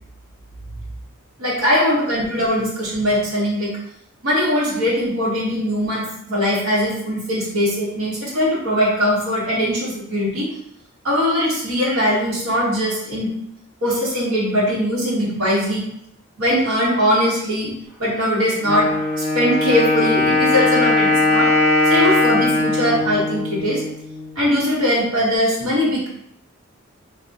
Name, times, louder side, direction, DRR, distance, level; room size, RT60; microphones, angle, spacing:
voice 1, 1.4-3.7 4.2-10.5 11.0-13.3 13.8-15.8 16.4-17.7 18.0-18.9 19.2-21.5 21.8-23.8 24.3-26.1, equal, 85° right, -7 dB, 0.9 m, -20 dB
Wind instrument woodwind instrument, 18.6-24.4, left 2 dB, 60° right, 1.1 m, -19 dB
3.4 x 2.1 x 2.6 m, 0.76 s
head